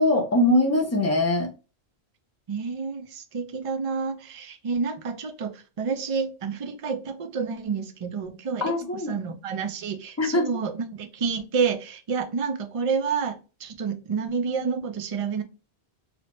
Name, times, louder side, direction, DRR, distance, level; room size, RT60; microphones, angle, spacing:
voice 1, 0.0-1.5 8.6-9.1 10.2-10.5, left 1 dB, 20° left, 0.4 m, -22 dB
voice 2, 2.5-15.4, right 5 dB, 50° right, 0.4 m, -29 dB
2.8 x 2.1 x 2.8 m
omnidirectional pair, 1.1 m